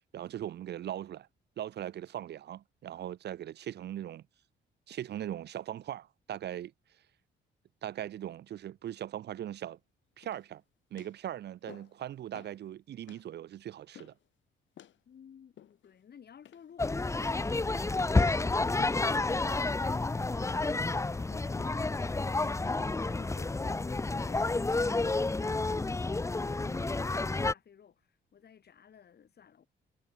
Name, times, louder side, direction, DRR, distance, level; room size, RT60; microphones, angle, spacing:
voice 1, 0.1-1.3 1.6-4.2 4.9-6.7 7.8-9.8 10.2-10.6 10.9-14.1, right 11 dB, 60° right, 0.6 m, -40 dB
sound 1, 10.2-10.6 11.0-11.2 11.7-12.0 12.3-12.6 13.1-13.3 13.9-14.3 14.8-15.0 15.6-16.0 16.4-16.8 17.2-17.6 18.0-18.3 18.8-19.1 19.6-19.8 20.4-20.7 21.3-21.6, left 11 dB, 70° left, 5.5 m, -53 dB
voice 2, 15.1-29.7, left 8 dB, 55° left, 6.1 m, -56 dB
sound 2, 16.8-27.5, left 3 dB, 15° left, 0.8 m, -30 dB
cardioid pair, 90°, 20 cm